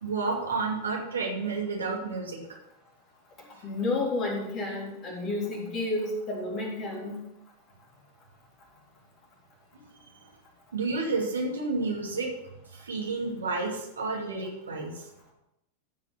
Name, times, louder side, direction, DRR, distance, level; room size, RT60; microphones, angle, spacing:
voice 1, 0.0-2.4 10.7-12.3 12.7-14.9, right 3 dB, 70° right, 0 dB, 2.5 m, -30 dB
voice 2, 3.6-7.2, left 2 dB, 30° left, -1 dB, 3.7 m, -31 dB
14.5 x 5.8 x 6.0 m, 0.84 s
figure-of-eight pair, 90°, 0 cm